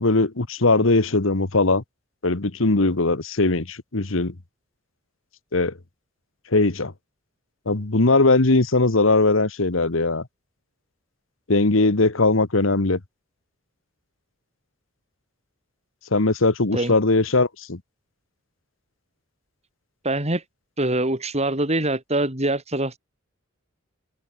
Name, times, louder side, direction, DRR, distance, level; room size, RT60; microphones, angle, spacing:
voice 1, 0.0-1.8 2.2-4.3 5.5-5.7 6.5-6.9 7.6-10.3 11.5-13.0 16.1-17.8, left 3 dB, 70° left, 1.5 m, -20 dB
voice 2, 20.0-20.4 20.8-23.0, right 1 dB, 30° right, 6.1 m, -24 dB
head